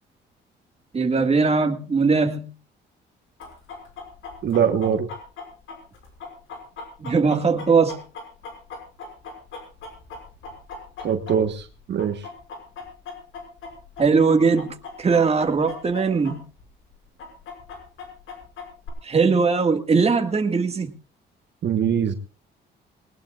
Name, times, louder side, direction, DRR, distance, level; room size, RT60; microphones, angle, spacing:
voice 1, 0.9-2.5 7.0-8.0 14.0-16.4 19.0-20.9, right 4 dB, 30° right, 1.9 m, -20 dB
Chicken rooster, 3.4-11.7 12.0-16.3 16.6-16.7 17.2-18.9, left 4 dB, 80° left, 6.0 m, -38 dB
voice 2, 4.4-5.1 11.0-12.3 21.6-22.1, right 8 dB, 60° right, 1.4 m, -22 dB
21.0 x 19.5 x 2.5 m
cardioid pair, 90°, 20 cm